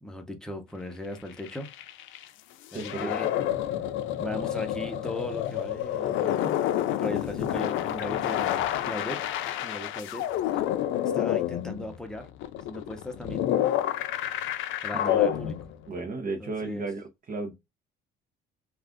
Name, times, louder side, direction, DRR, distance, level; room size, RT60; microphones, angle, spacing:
voice 1, 0.0-1.7 2.7-3.3 4.2-6.6 6.9-9.2 9.6-10.6 11.0-12.3 12.6-13.5 14.8-15.6 16.4-16.9, left 1 dB, 5° left, 0.8 m, -38 dB
sound 1, 1.3-2.2 2.7-16.0, left 11 dB, 80° left, 0.4 m, -29 dB
voice 2, 2.7-3.1 15.1-15.5 15.9-17.5, right 3 dB, 45° right, 0.7 m, -34 dB
2.5 x 2.4 x 3.5 m
cardioid pair, 110°, 20 cm